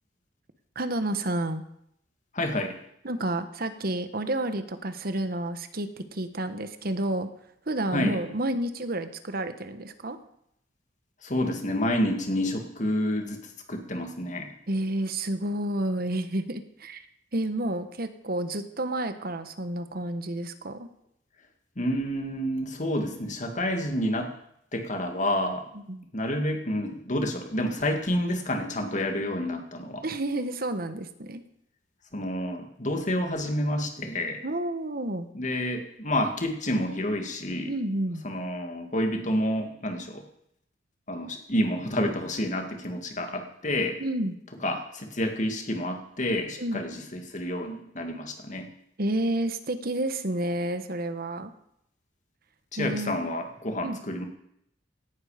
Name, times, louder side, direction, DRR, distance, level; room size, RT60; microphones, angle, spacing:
voice 1, 0.7-1.6 3.0-7.3 7.7-10.2 14.7-17.1 17.3-20.9 25.7-26.1 30.0-31.4 34.4-35.3 37.7-38.2 44.0-44.4 46.6-46.8 49.0-51.5 52.8-53.2 53.8-54.0, right 1 dB, 55° right, 10 dB, 1.2 m, -30 dB
voice 2, 2.3-2.8 7.9-8.2 11.2-14.5 21.8-24.3 24.7-25.6 26.1-30.0 32.1-34.4 35.3-37.7 38.2-40.2 41.1-44.0 44.6-48.7 52.7-54.2, left 1 dB, 45° left, 4 dB, 2.3 m, -29 dB
17.5 x 11.5 x 5.1 m, 0.75 s
head